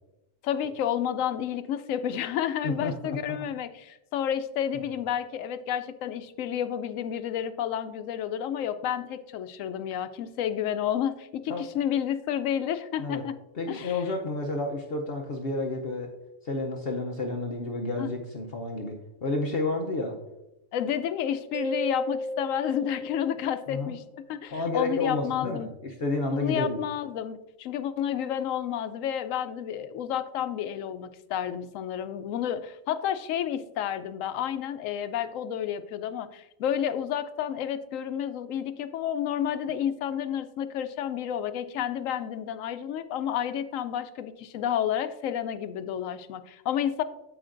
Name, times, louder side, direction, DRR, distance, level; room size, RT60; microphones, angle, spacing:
voice 1, 0.4-13.4 13.7-14.0 18.0-18.1 20.7-25.7 26.4-47.0, left 9 dB, 90° left, 11 dB, 1.0 m, -30 dB
voice 2, 2.6-3.4 11.5-11.7 13.0-13.2 13.5-16.1 16.4-20.2 23.7-23.9 24.5-26.8, left 2 dB, 55° left, 1 dB, 0.9 m, -30 dB
Mallet percussion, 21.5-24.1, equal, 45° right, 0.5 m, -35 dB
15.0 x 5.0 x 2.5 m, 0.94 s
omnidirectional pair, 1.3 m